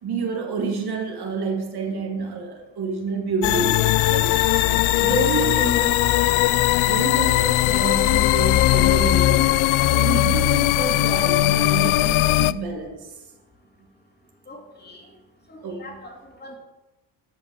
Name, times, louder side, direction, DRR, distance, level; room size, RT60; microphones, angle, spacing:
voice 1, 0.0-6.0 6.8-13.1 15.6-16.0, right 4 dB, 50° right, 3 dB, 2.0 m, -29 dB
sound 1, 3.4-12.5, left 16 dB, 75° left, 0.5 m, -19 dB
voice 2, 14.5-15.1 15.5-16.6, left 1 dB, 20° left, 1 dB, 2.5 m, -43 dB
13.0 x 5.4 x 8.2 m, 1.0 s
cardioid pair, 140°, 49 cm